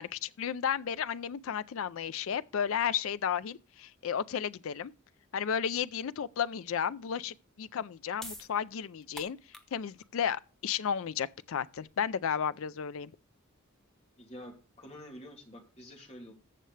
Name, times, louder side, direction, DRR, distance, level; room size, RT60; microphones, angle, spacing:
voice 1, 0.0-4.9 5.3-9.4 9.7-13.1, left 8 dB, 65° left, 0.4 m, -33 dB
sound 1, 8.2-14.5, equal, ahead, 0.9 m, -52 dB
voice 2, 14.2-16.3, equal, 30° left, 2.6 m, -48 dB
14.0 x 6.7 x 3.2 m
head